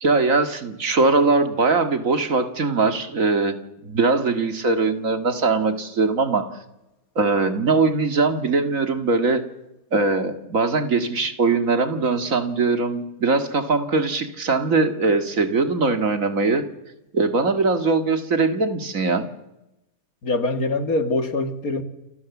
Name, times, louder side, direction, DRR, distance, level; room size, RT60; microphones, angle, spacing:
voice 1, 0.0-6.5 7.2-9.4 9.9-16.6 17.1-19.3, right 3 dB, 65° right, 2.4 m, -21 dB
voice 2, 20.2-21.8, left 2 dB, 85° left, 2.6 m, -23 dB
28.5 x 26.0 x 7.3 m
omnidirectional pair, 1.5 m